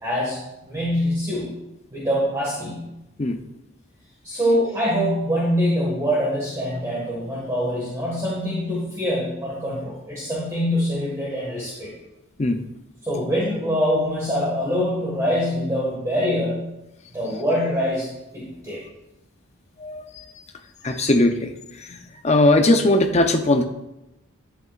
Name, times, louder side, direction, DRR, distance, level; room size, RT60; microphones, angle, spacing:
voice 1, 0.0-1.5 1.9-2.9 4.2-11.9 13.0-16.7 17.1-18.1 18.3-18.8 20.8-21.0, equal, 15° right, -6 dB, 1.6 m, -24 dB
voice 2, 19.8-20.2 20.8-21.5 21.8-22.0 22.2-23.6, left 2 dB, 30° left, 6 dB, 0.6 m, -19 dB
11.0 x 8.0 x 2.4 m, 0.93 s
head